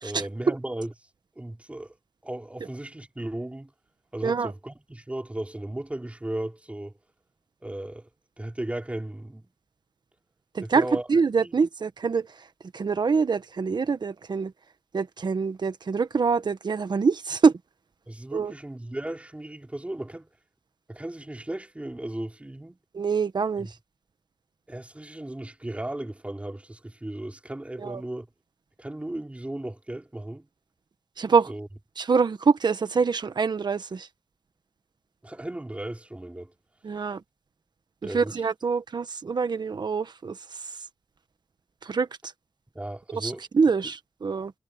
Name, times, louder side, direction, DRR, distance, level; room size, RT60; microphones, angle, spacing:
voice 1, 0.0-0.9 1.4-1.9 2.2-3.7 4.1-6.9 7.6-8.1 8.4-9.5 10.6-11.1 11.4-11.5 18.1-20.3 20.9-22.8 23.6-23.7 24.7-28.3 28.8-30.5 31.5-31.7 35.2-36.5 38.0-38.3 42.7-43.4, right 1 dB, 15° right, 3.9 m, -36 dB
voice 2, 10.5-12.3 12.7-14.5 14.9-17.5 18.3-18.5 22.9-23.7 27.8-28.0 31.2-31.5 32.0-34.1 36.8-37.2 38.0-40.4 41.8-42.1 43.1-44.5, right 5 dB, 55° right, 1.4 m, -25 dB
wide cardioid pair, 105°, 9 cm